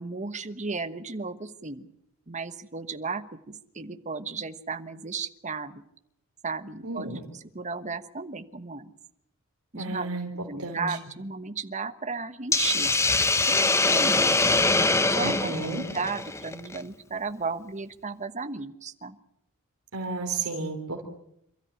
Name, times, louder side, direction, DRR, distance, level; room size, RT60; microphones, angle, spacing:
voice 1, 0.0-1.9 2.3-5.8 6.4-7.1 7.3-8.8 9.7-10.2 10.5-12.9 13.5-14.4 15.0-15.5 15.9-19.1, right 4 dB, 35° right, 10 dB, 1.2 m, -34 dB
voice 2, 6.8-7.2 9.7-10.3 10.6-11.0 15.2-15.8 19.9-21.1, right 3 dB, 80° right, 1 dB, 3.3 m, -32 dB
Hiss, 12.5-16.8, left 3 dB, 15° left, 1.0 m, -23 dB
28.0 x 13.5 x 9.9 m, 0.78 s
head